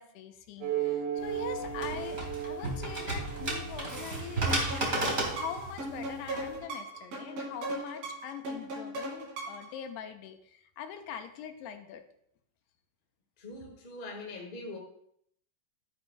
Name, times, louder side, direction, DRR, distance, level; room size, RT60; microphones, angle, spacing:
voice 1, 0.0-4.6 5.3-12.0, left 8 dB, 90° left, 7 dB, 2.9 m, -43 dB
sound 1, 0.6-5.6, right 9 dB, 85° right, 3.9 m, -37 dB
sound 2, 1.2-6.6, right 2 dB, 25° right, 2.2 m, -34 dB
sound 3, 4.5-9.7, right 1 dB, 65° right, 4.5 m, -38 dB
voice 2, 13.4-14.8, left 2 dB, 30° left, 0 dB, 0.9 m, -42 dB
13.0 x 11.0 x 2.4 m, 0.69 s
omnidirectional pair, 4.7 m